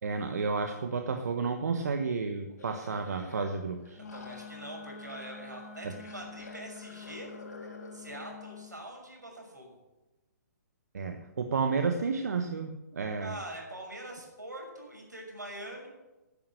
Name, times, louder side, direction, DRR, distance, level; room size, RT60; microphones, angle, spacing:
voice 1, 0.0-4.0 5.8-5.9 10.9-13.3, right 4 dB, 65° right, 6 dB, 1.1 m, -31 dB
sound 1, 2.6-3.5 3.8-5.5 6.0-8.4, left 2 dB, 75° left, 3.6 m, -50 dB
Wind instrument woodwind instrument, 3.9-8.7, left 6 dB, 45° left, 3.0 m, -47 dB
voice 2, 4.1-7.3 7.9-9.7 13.2-15.9, right 1 dB, 85° right, 1 dB, 6.1 m, -43 dB
13.0 x 10.0 x 6.7 m, 1.1 s
figure-of-eight pair, 130°, 9 cm